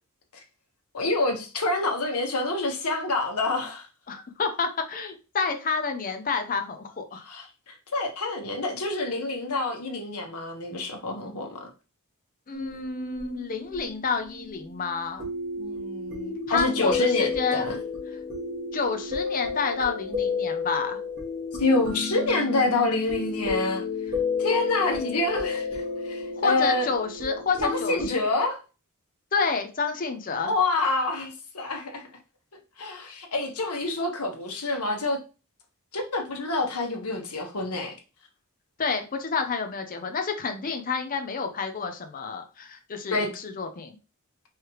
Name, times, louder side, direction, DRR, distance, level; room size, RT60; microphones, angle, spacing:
voice 1, 0.9-3.9 7.3-11.7 16.5-17.8 21.6-23.8 24.4-26.9 27.6-28.6 30.4-32.1 32.8-35.2 35.9-37.9 43.1-43.3, left 2 dB, 80° left, 1.3 m, -27 dB
voice 2, 4.1-7.2 12.5-15.3 15.6-17.7 18.7-21.0 26.3-28.3 29.3-30.5 38.8-44.0, left 5 dB, 40° left, 0.6 m, -29 dB
sound 1, 12.5-28.1, left 4 dB, 45° right, 1.7 m, -32 dB
4.7 x 3.3 x 3.1 m
head